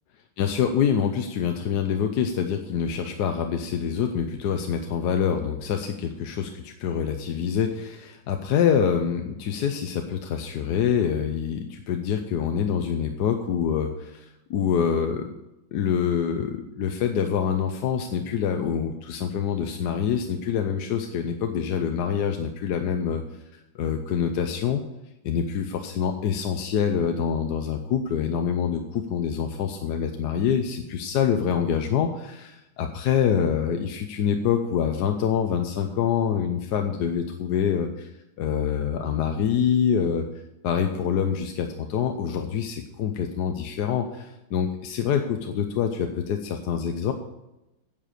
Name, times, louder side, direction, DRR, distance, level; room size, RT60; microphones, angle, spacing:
voice 1, 0.4-6.5 6.8-15.3 15.7-23.2 23.7-24.8 25.2-38.1 38.4-40.2 40.6-47.1, left 8 dB, 65° left, 5 dB, 1.2 m, -25 dB
9.9 x 7.5 x 6.6 m, 0.95 s
omnidirectional pair, 2.1 m